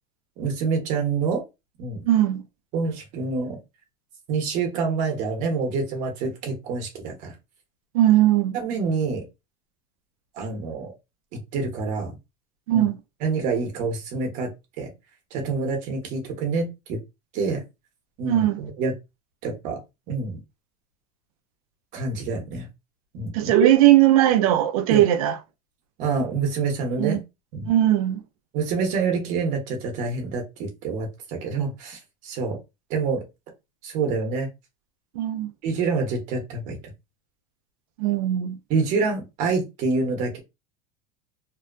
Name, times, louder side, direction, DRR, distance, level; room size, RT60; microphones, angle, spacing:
voice 1, 0.4-1.4 1.8-2.0 2.7-3.6 4.3-7.3 8.5-9.2 10.4-10.9 11.3-12.2 12.7-12.9 13.2-14.5 14.8-14.9 15.3-17.0 17.3-17.6 18.2-18.9 19.4-19.8 20.1-20.4 21.9-22.7 23.1-23.7 24.9-25.0 26.0-27.2 27.5-27.7 28.5-32.6 32.9-33.2 33.8-34.5 35.6-36.8 38.7-40.4, right 4 dB, 45° right, 0.9 m, -26 dB
voice 2, 2.1-2.4 7.9-8.6 12.7-13.0 18.2-18.6 23.3-25.4 27.0-27.2 27.7-28.2 35.2-35.5 38.0-38.6, right 13 dB, 85° right, 0.5 m, -19 dB
2.7 x 2.1 x 2.4 m
supercardioid pair, 155°, 18 cm